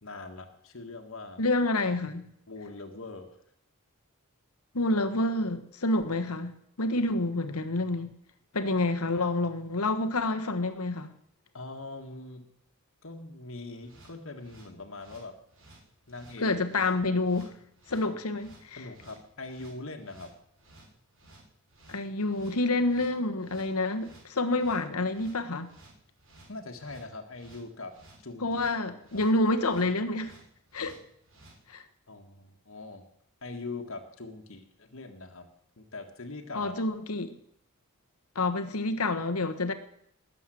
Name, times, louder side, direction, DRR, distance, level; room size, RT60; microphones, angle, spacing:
voice 1, 0.0-1.4 2.5-3.4 11.5-12.4 13.0-15.3 16.1-16.5 18.8-20.3 26.5-27.9 28.2-28.5 29.1-29.2 32.1-33.0 33.4-35.5 35.8-36.7, left 3 dB, 65° left, 1.7 m, -42 dB
voice 2, 1.4-2.3 4.7-6.5 6.8-8.1 8.5-11.1 16.4-17.5 17.9-18.8 21.9-25.7 28.4-30.4 30.7-31.0 31.7-31.8 36.5-37.3 38.3-39.7, left 2 dB, 90° left, 1.4 m, -28 dB
sound 1, 13.8-31.6, right 2 dB, 60° right, 5.7 m, -56 dB
20.0 x 7.8 x 7.7 m
head